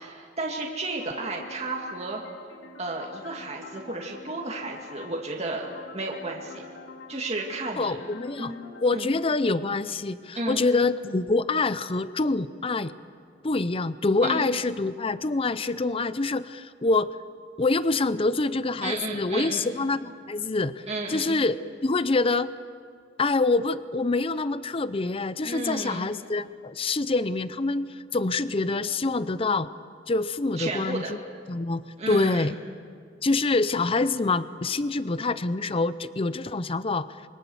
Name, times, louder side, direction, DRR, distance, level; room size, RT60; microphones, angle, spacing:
voice 1, 0.0-2.2 2.8-5.7 5.9-6.6 7.1-7.9 8.4-8.6 8.9-9.1 10.3-10.6 14.2-14.5 18.8-19.7 20.9-21.4 25.4-26.1 30.6-31.1 32.0-32.5, right 2 dB, 35° right, -1 dB, 2.2 m, -33 dB
sound 1, 1.0-9.0, left 3 dB, 85° left, 2.8 m, -46 dB
voice 2, 7.8-8.5 8.8-12.9 13.4-17.2 17.6-22.5 23.2-29.7 30.1-31.2 31.5-32.5 33.2-37.1, left 3 dB, 30° left, 14 dB, 0.6 m, -26 dB
26.5 x 23.5 x 7.1 m, 2.1 s
head